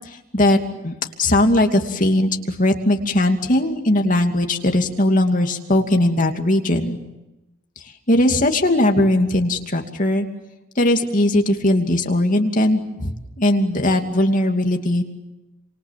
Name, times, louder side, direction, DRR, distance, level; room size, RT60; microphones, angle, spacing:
voice 1, 1.2-7.0 8.1-10.3 10.8-13.1 13.4-15.0, left 1 dB, 40° left, 3 dB, 2.6 m, -19 dB
28.5 x 27.0 x 7.6 m, 0.99 s
head